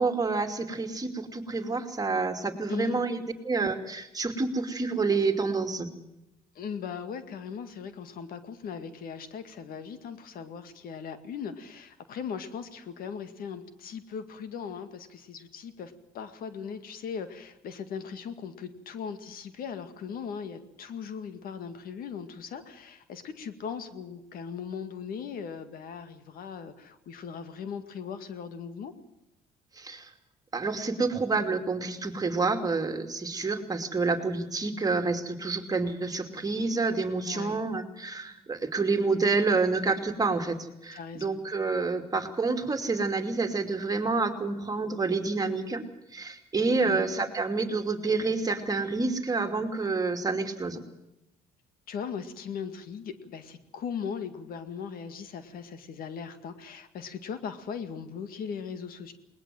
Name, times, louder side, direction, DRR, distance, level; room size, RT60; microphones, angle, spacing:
voice 1, 0.0-3.2 3.4-5.9 29.8-30.1 30.5-40.6 40.8-45.8 46.1-50.8, right 3 dB, 25° right, 6 dB, 2.7 m, -28 dB
voice 2, 2.7-3.0 6.6-28.9 37.3-37.6 40.9-41.4 46.8-47.2 51.9-59.1, left 6 dB, 65° left, 10 dB, 2.0 m, -39 dB
20.5 x 19.5 x 7.7 m, 0.87 s
cardioid pair, 95°, 16 cm